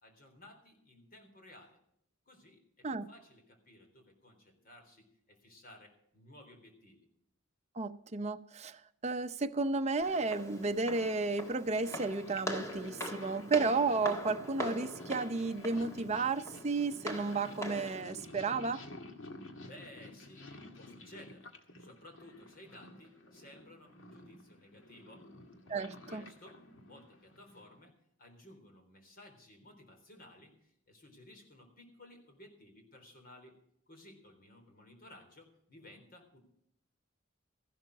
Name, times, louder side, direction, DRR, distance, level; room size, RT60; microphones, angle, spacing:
voice 1, 0.0-1.8 2.3-7.1 19.6-25.3 25.9-27.9 28.2-33.5 33.9-36.4, left 1 dB, 45° left, 3.7 m, -56 dB
voice 2, 7.8-18.8 25.7-26.2, right 3 dB, 35° right, 0.7 m, -33 dB
Walk footsteps, 10.0-18.0, equal, 15° left, 1.7 m, -42 dB
Purr, 10.1-27.8, left 1 dB, 75° left, 1.9 m, -52 dB
14.5 x 11.5 x 4.8 m
head